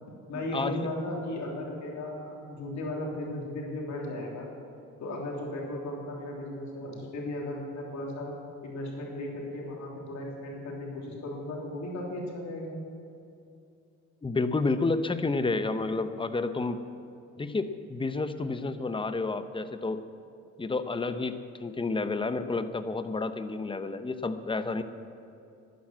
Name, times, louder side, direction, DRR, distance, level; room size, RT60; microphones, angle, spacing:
voice 1, 0.3-4.5 5.0-8.3 8.6-12.8, left 1 dB, 65° left, -2 dB, 3.2 m, -36 dB
voice 2, 14.2-16.8 17.4-20.0 20.6-24.8, left 3 dB, 15° left, 10 dB, 0.8 m, -30 dB
12.0 x 9.4 x 7.6 m, 2.6 s
cardioid pair, 90°, 30 cm